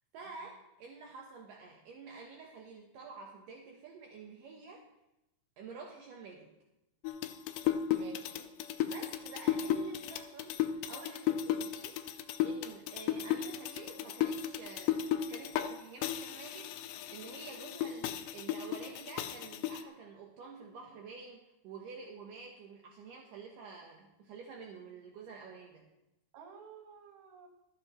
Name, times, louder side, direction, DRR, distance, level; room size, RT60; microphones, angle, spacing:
voice 1, 0.1-4.8 5.6-6.5 8.8-25.9, right 5 dB, 80° right, 0 dB, 1.9 m, -49 dB
sound 1, 7.1-15.7 16.0-19.8, left 10 dB, 80° left, 2.6 m, -35 dB
voice 2, 7.9-8.5 26.3-27.5, right 5 dB, 65° right, 1 dB, 1.9 m, -52 dB
13.5 x 13.5 x 3.1 m, 0.93 s
omnidirectional pair, 5.5 m